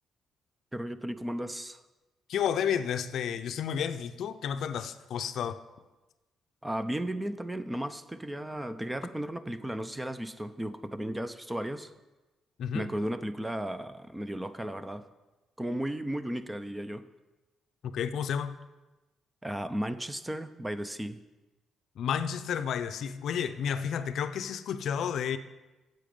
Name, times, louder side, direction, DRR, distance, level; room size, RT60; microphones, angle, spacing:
voice 1, 0.7-1.8 6.6-11.9 12.7-15.0 15.6-17.1 19.4-21.2, right 1 dB, 10° right, 12 dB, 0.5 m, -35 dB
voice 2, 2.3-5.6 12.6-12.9 17.8-18.6 22.0-25.4, left 8 dB, 70° left, 11 dB, 0.5 m, -31 dB
9.1 x 7.8 x 5.3 m, 1.1 s
cardioid pair, 90°, 0 cm